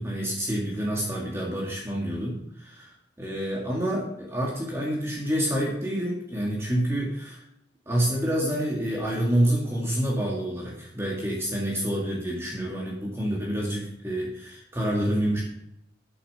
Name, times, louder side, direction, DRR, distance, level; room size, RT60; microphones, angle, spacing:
voice 1, 0.0-7.4 7.9-15.4, right 1 dB, 15° right, -3 dB, 2.1 m, -28 dB
9.3 x 8.6 x 6.7 m, 0.77 s
head